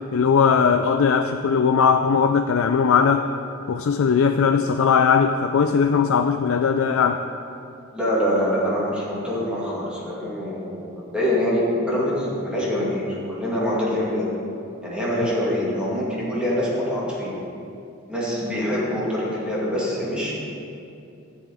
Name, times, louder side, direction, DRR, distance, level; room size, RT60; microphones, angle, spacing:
voice 1, 0.1-3.3 3.7-7.2, left 6 dB, 80° left, 6 dB, 0.4 m, -19 dB
voice 2, 7.9-14.3 14.8-17.4 18.1-20.4, equal, 5° right, -7 dB, 2.1 m, -25 dB
14.5 x 7.9 x 3.6 m, 2.7 s
head